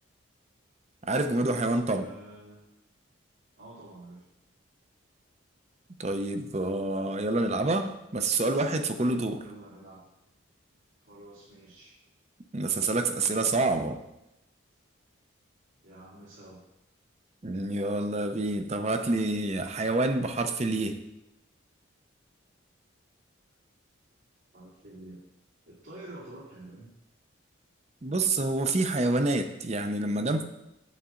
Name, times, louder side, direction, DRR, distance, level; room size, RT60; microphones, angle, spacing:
voice 1, 1.0-2.1 6.0-9.4 12.5-14.0 17.4-21.0 28.0-30.4, right 2 dB, 30° right, 8 dB, 0.6 m, -27 dB
voice 2, 1.9-2.6 3.6-4.3 9.4-10.0 11.0-11.9 15.8-16.6 24.5-25.2 25.6-26.9, right 1 dB, 80° right, -10 dB, 2.7 m, -48 dB
8.6 x 7.4 x 3.8 m, 0.90 s
head